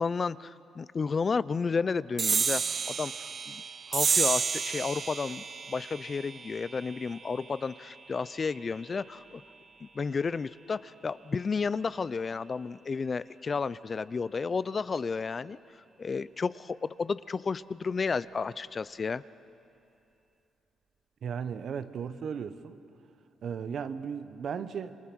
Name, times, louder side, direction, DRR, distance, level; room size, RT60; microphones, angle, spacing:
voice 1, 0.0-3.6 3.9-9.4 9.8-15.6 16.0-19.2, left 5 dB, 35° left, 17 dB, 0.5 m, -32 dB
sound 1, 2.2-9.0, right 5 dB, 45° right, 0.7 m, -32 dB
voice 2, 21.2-22.8 23.4-24.9, right 7 dB, 60° right, 12 dB, 1.1 m, -36 dB
27.5 x 23.0 x 6.2 m, 2.8 s
cardioid pair, 90°, 0 cm